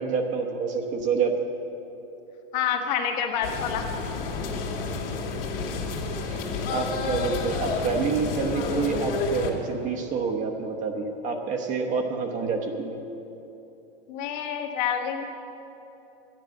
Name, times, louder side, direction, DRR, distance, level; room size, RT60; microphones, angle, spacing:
voice 1, 0.0-1.5 5.6-5.9 6.2-6.4 6.7-13.0, right 5 dB, 25° right, 4 dB, 1.0 m, -28 dB
voice 2, 2.5-4.2 14.1-15.2, left 8 dB, 50° left, 3 dB, 1.4 m, -28 dB
sound 1, 3.4-9.5, left 4 dB, 70° left, 2.1 m, -30 dB
12.0 x 10.5 x 6.4 m, 3.0 s
supercardioid pair, 155°, 29 cm